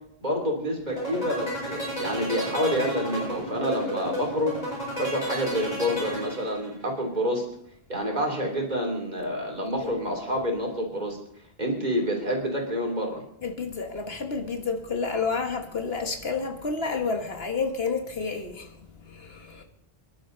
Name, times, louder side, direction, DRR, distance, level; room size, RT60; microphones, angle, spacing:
voice 1, 0.2-4.5 5.0-7.4 7.9-11.2 11.6-13.2, equal, 40° right, 3.4 m, -28 dB
sound 1, 0.9-6.8, right 1 dB, 35° left, 7.7 m, -32 dB
voice 2, 9.8-10.1 13.4-19.6, left 4 dB, 60° left, 1.7 m, -30 dB
25.5 x 11.5 x 4.0 m
omnidirectional pair, 1.2 m